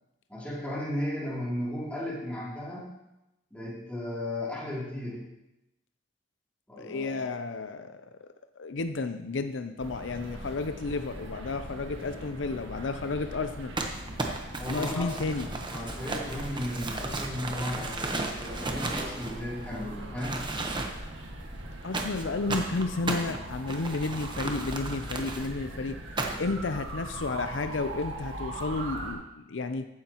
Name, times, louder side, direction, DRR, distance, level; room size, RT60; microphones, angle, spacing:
voice 1, 0.3-2.9 3.5-5.2 6.7-7.2 14.6-15.1 15.7-20.4, left 1 dB, 10° left, -6 dB, 3.0 m, -35 dB
voice 2, 6.8-8.0 8.6-13.7 14.7-15.7 21.8-26.0 26.4-29.9, left 3 dB, 85° left, 9 dB, 0.6 m, -32 dB
sound 1, 9.8-29.2, right 1 dB, 85° right, 1.8 m, -40 dB
Crumpling crinkling, 13.8-19.8 20.2-21.2 21.9-25.5 26.2-26.6, right 2 dB, 25° right, 1.1 m, -34 dB
14.5 x 9.5 x 3.0 m, 0.92 s
head